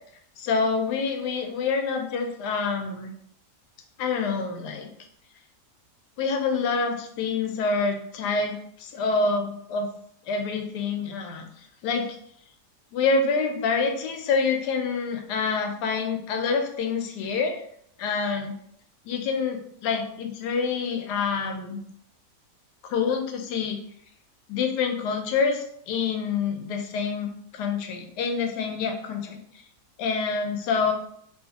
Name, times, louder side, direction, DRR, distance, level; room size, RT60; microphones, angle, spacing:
voice 1, 0.4-3.1 4.0-4.9 6.2-9.9 10.2-11.5 11.8-12.2 12.9-17.6 18.0-18.5 19.0-21.8 22.8-23.8 24.5-29.4 30.0-30.9, left 4 dB, 85° left, 4 dB, 1.2 m, -27 dB
3.1 x 3.0 x 2.8 m, 0.67 s
omnidirectional pair, 1.7 m